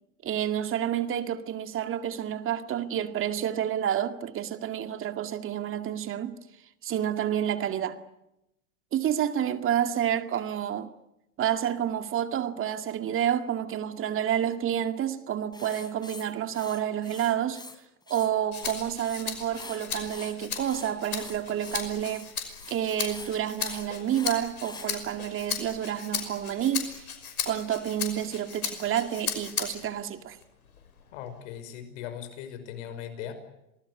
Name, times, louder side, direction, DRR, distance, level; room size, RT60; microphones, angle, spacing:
voice 1, 0.2-6.3 6.8-8.0 8.9-10.9 11.4-17.6 18.1-22.3 22.7-27.1 27.5-30.4, right 10 dB, 30° right, 2.1 m, -29 dB
Writing, 15.5-17.8 18.0-19.2 19.5-24.9, left 3 dB, 10° left, 3.7 m, -45 dB
Rattle (instrument), 18.5-30.0 30.4-31.6, left 7 dB, 85° left, 5.8 m, -36 dB
voice 2, 31.1-33.3, left 9 dB, 60° left, 5.6 m, -39 dB
27.0 x 19.5 x 9.8 m
hypercardioid pair, 110°, 42 cm